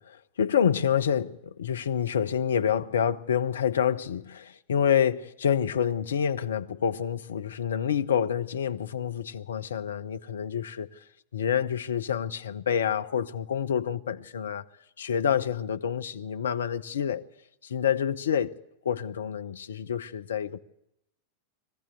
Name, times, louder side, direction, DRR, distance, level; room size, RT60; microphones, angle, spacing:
voice 1, 0.0-11.0 11.3-14.6 15.0-17.3 17.6-18.6 18.8-20.6, left 8 dB, 65° left, 0.8 m, -28 dB
22.5 x 15.0 x 8.2 m
figure-of-eight pair, 90°, 0 cm